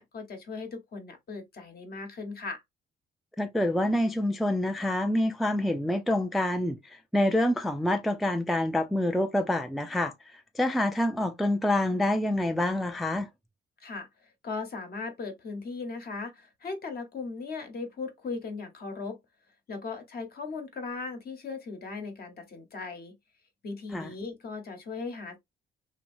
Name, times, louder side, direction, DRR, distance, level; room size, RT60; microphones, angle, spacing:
voice 1, 0.0-2.6 13.8-19.2 19.7-23.1 23.6-25.4, left 4 dB, 50° left, 1.0 m, -38 dB
voice 2, 3.4-13.3 23.9-24.1, left 1 dB, ahead, 0.3 m, -27 dB
2.7 x 2.6 x 2.5 m
cardioid pair, 90°, 20 cm